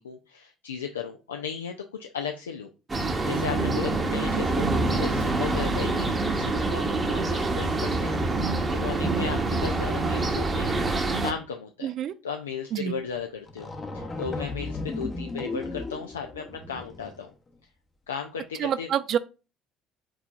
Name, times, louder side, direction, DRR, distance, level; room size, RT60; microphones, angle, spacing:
voice 1, 0.0-10.8 11.2-11.9 12.2-13.7 13.9-17.3 18.1-18.9, left 6 dB, 85° left, 0.3 m, -36 dB
sound 1, 2.9-11.3, right 2 dB, 25° right, 0.9 m, -26 dB
voice 2, 11.8-12.1 12.7-12.9 18.6-19.2, right 9 dB, 55° right, 0.4 m, -27 dB
sound 2, 13.1-13.2 13.5-17.2, left 3 dB, 30° left, 0.8 m, -35 dB
4.7 x 3.9 x 2.4 m
hypercardioid pair, 60°, 0 cm